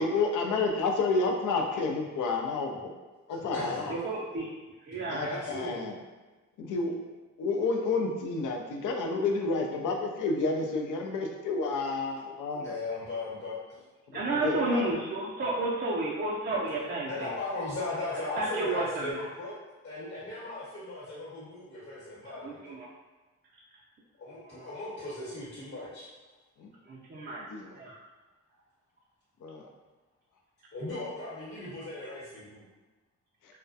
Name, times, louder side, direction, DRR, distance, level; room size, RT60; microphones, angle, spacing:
voice 1, 0.0-2.9 3.3-3.9 5.1-5.9 6.6-7.0 7.4-12.7 14.4-15.0 26.6-26.7 27.5-27.8 29.4-29.7, left 3 dB, 80° left, 2 dB, 0.5 m, -30 dB
voice 2, 3.3-3.8 5.2-5.9 12.6-13.6 17.1-19.5 19.8-22.8 24.2-26.1 30.7-32.6, left 2 dB, 50° left, -9 dB, 1.0 m, -37 dB
voice 3, 3.9-4.5 4.8-5.2 12.5-12.6 14.1-17.3 18.4-19.2 22.4-22.9 24.5-24.7 26.9-27.4 27.8-28.0, right 2 dB, 35° right, -4 dB, 0.4 m, -31 dB
2.2 x 2.1 x 2.6 m, 1.2 s
cardioid pair, 65°, 31 cm